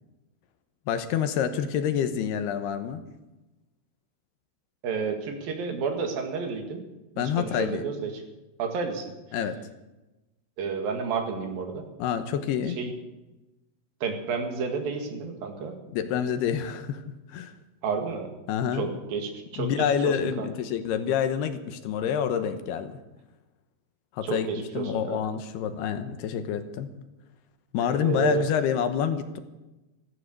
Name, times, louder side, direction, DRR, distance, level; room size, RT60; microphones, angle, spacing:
voice 1, 0.9-3.0 7.2-7.9 9.3-9.6 12.0-12.8 15.9-17.0 17.3-17.6 18.5-19.0 19.6-23.0 24.1-24.5 24.7-26.9 27.7-29.4, left 8 dB, 75° left, 9 dB, 2.9 m, -27 dB
voice 2, 4.8-6.8 7.2-8.1 8.6-9.1 10.6-11.8 12.8-12.9 14.0-15.8 17.8-18.3 18.8-20.5 24.2-25.2 27.8-28.5, right 5 dB, 60° right, 4 dB, 3.6 m, -31 dB
14.5 x 14.0 x 6.6 m, 1.0 s
omnidirectional pair, 4.9 m